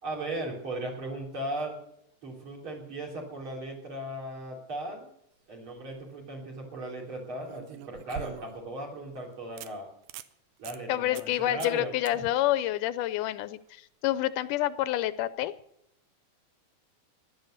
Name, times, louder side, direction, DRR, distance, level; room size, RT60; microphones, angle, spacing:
voice 1, 0.0-1.8 2.2-5.1 5.5-9.9 10.6-11.9, right 1 dB, 40° right, -1 dB, 4.0 m, -37 dB
sound 1, 6.0-6.1 7.4-8.7 9.1-9.2 9.6-9.7 10.0-10.3 10.6-10.8 11.1-11.3 11.6-11.8 12.1-12.2 15.2-15.3, right 11 dB, 85° right, 2.2 m, -43 dB
voice 2, 10.9-15.5, left 14 dB, 85° left, 15 dB, 2.2 m, -28 dB
16.0 x 11.0 x 6.5 m, 0.74 s
omnidirectional pair, 3.6 m